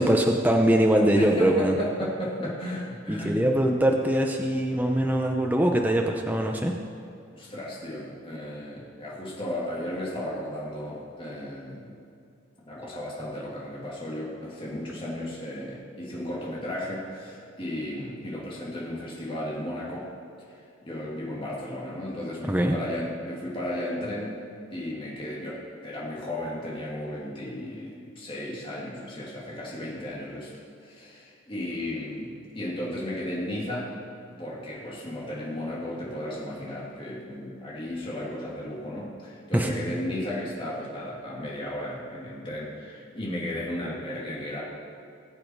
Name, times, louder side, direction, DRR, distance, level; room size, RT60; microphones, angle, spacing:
voice 1, 0.0-1.8 3.1-6.7 22.5-22.8 39.5-39.8, right 1 dB, 10° right, 2 dB, 0.7 m, -22 dB
voice 2, 1.2-3.7 7.3-11.9 12.7-20.1 20.9-24.3 24.7-30.5 30.8-33.9 34.4-44.6, left 1 dB, 25° left, -5 dB, 2.7 m, -34 dB
20.0 x 7.7 x 4.7 m, 2.5 s
head